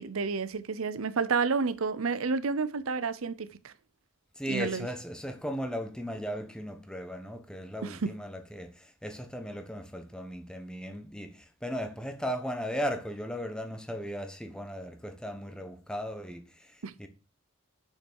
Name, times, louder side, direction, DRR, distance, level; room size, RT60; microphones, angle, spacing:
voice 1, 0.0-3.7 4.5-4.9 7.8-8.2 16.8-16.9, right 4 dB, 80° right, 0.7 m, -30 dB
voice 2, 4.4-17.1, equal, 5° left, 1.1 m, -37 dB
6.7 x 6.1 x 6.3 m
head